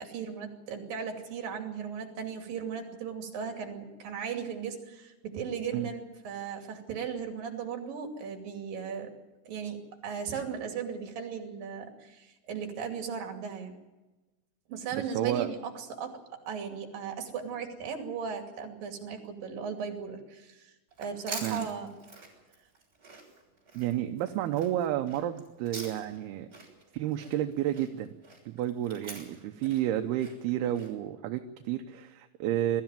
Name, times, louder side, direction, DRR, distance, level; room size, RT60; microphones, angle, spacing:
voice 1, 0.0-9.1 9.5-13.7 14.7-20.7 21.0-21.9, right 6 dB, 60° right, 4 dB, 4.2 m, -37 dB
voice 2, 14.9-15.5 21.3-21.7 23.7-26.5 26.9-28.1 28.5-32.8, right 12 dB, 80° right, 6 dB, 2.8 m, -31 dB
Chewing mastication, 20.9-26.3 26.5-30.9, right 3 dB, 20° right, 6.7 m, -46 dB
22.0 x 14.0 x 9.0 m, 1.1 s
omnidirectional pair, 4.6 m